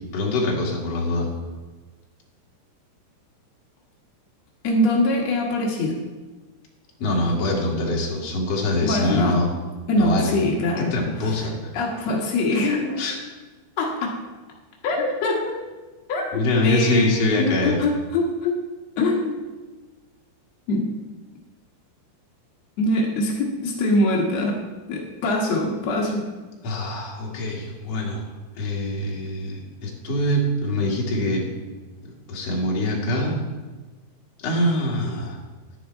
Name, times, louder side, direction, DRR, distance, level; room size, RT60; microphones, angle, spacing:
voice 1, 0.1-1.3 7.0-9.5 9.9-10.3 10.8-11.8 13.0-13.2 16.3-17.8 26.6-28.2 28.6-31.5 32.0-33.4 34.4-35.4, left 1 dB, 50° left, -2 dB, 2.1 m, -24 dB
voice 2, 4.6-6.0 8.8-9.4 9.9-10.9 11.7-13.0 13.8-14.2 14.8-15.5 16.1-18.5 19.0-19.4 20.7-20.9 22.8-24.6 24.9-26.2, left 2 dB, 75° left, -2 dB, 1.5 m, -23 dB
11.5 x 9.9 x 4.5 m, 1.3 s
omnidirectional pair, 5.4 m